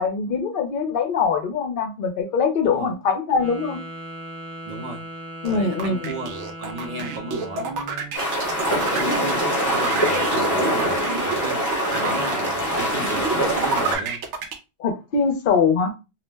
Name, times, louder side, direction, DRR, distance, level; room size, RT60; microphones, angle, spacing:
voice 1, 0.0-3.8 5.4-6.0 14.8-15.9, left 5 dB, 55° left, 0.7 m, -22 dB
Wind instrument woodwind instrument, 3.3-7.9, right 1 dB, 15° right, 0.6 m, -38 dB
voice 2, 4.6-5.0 5.5-6.3 6.6-8.1 8.7-14.2, right 2 dB, 55° right, 0.6 m, -34 dB
sound 1, 5.4-14.5, right 5 dB, 80° right, 0.9 m, -29 dB
sound 2, 8.1-14.0, equal, 20° left, 0.8 m, -23 dB
2.4 x 2.0 x 3.2 m
omnidirectional pair, 1.2 m